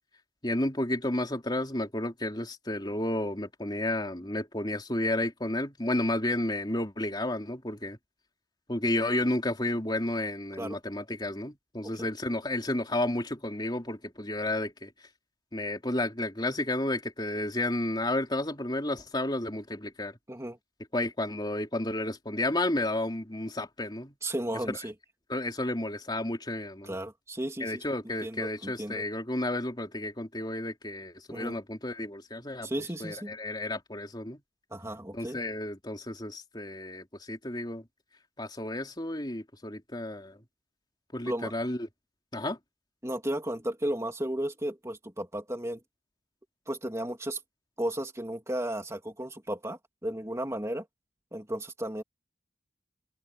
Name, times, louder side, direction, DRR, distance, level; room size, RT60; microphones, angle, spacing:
voice 1, 0.4-8.0 8.7-14.9 15.5-20.2 20.9-24.1 24.6-24.7 25.3-26.9 27.6-32.7 33.0-34.4 35.1-37.8 38.4-40.4 41.1-41.9 42.3-42.6, left 1 dB, 25° left, 3.7 m, -32 dB
voice 2, 24.2-24.9 26.8-29.0 31.3-31.6 32.6-33.3 34.7-35.4 41.2-41.5 43.0-45.8 46.7-47.4 47.8-50.8 51.3-52.0, right 1 dB, 15° right, 3.2 m, -34 dB
open air
head